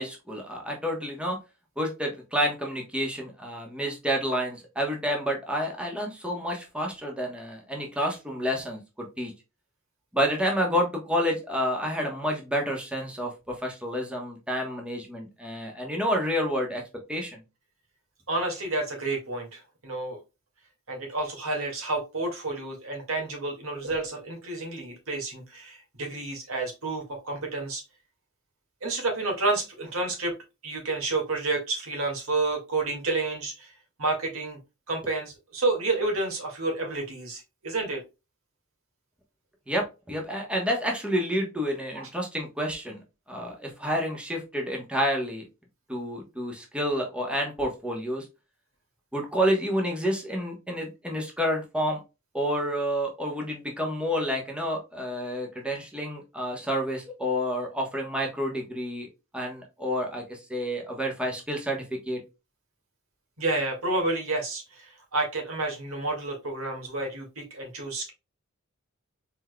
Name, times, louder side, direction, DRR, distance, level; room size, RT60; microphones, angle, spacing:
voice 1, 0.0-1.4 1.8-9.3 10.1-16.8 17.1-17.4 39.7-43.0 43.3-45.4 45.9-48.3 49.1-52.0 52.3-59.1 59.3-62.2, equal, 5° right, 0 dB, 1.1 m, -29 dB
voice 2, 18.3-20.2 20.9-27.8 28.8-30.3 30.6-33.7 34.0-34.6 34.9-38.0 41.9-42.1 63.4-68.1, right 2 dB, 75° right, 1 dB, 2.1 m, -30 dB
4.4 x 4.4 x 2.2 m, 0.26 s
head